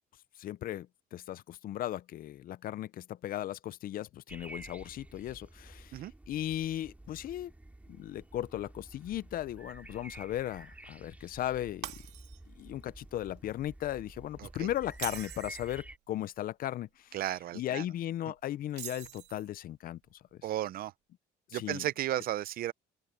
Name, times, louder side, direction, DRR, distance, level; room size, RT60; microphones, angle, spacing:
voice 1, 0.4-7.5 7.9-12.0 12.5-17.2 17.5-20.2 21.5-21.9, left 12 dB, 60° left, 0.6 m, -37 dB
sound 1, 4.3-16.0, right 1 dB, 10° right, 2.2 m, -51 dB
Shatter, 11.8-12.6 13.0-13.3 14.9-15.7 18.7-19.6, right 15 dB, 80° right, 2.6 m, -43 dB
voice 2, 17.1-17.9 20.4-20.9 21.5-22.7, right 13 dB, 60° right, 0.6 m, -34 dB
open air
cardioid pair, 110°, 17 cm